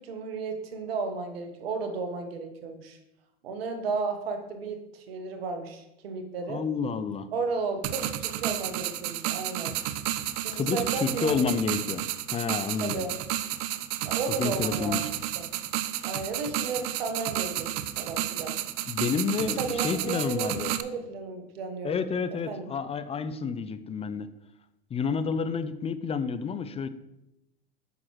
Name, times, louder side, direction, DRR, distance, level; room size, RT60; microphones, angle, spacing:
voice 1, 0.0-3.0 3.4-6.6 7.3-9.7 10.4-11.5 12.8-13.1 14.0-15.0 15.4-15.5 16.0-17.7 18.0-18.6 19.4-22.1 22.5-22.7, right 4 dB, 75° right, 6 dB, 1.2 m, -33 dB
voice 2, 6.5-7.3 10.5-12.1 12.3-13.0 14.3-15.1 18.9-20.7 21.8-24.3 24.9-26.9, left 6 dB, 20° left, 11 dB, 0.4 m, -30 dB
sound 1, 7.8-20.8, right 13 dB, 50° right, 0.6 m, -31 dB
8.8 x 5.9 x 3.1 m, 0.89 s
hypercardioid pair, 90°, 30 cm